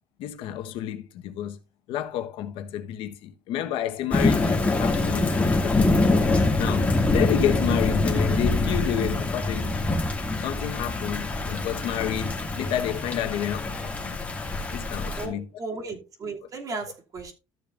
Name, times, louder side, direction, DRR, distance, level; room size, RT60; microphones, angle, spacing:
voice 1, 0.2-1.6 1.9-6.1 6.6-9.8 10.4-14.2 14.7-15.5, left 11 dB, 80° left, 1.2 m, -30 dB
Thunder / Rain, 4.1-15.3, left 2 dB, 15° left, 2.2 m, -24 dB
voice 2, 15.2-17.3, right 3 dB, 40° right, 2.7 m, -35 dB
13.5 x 6.8 x 2.5 m
cardioid pair, 125°, 9 cm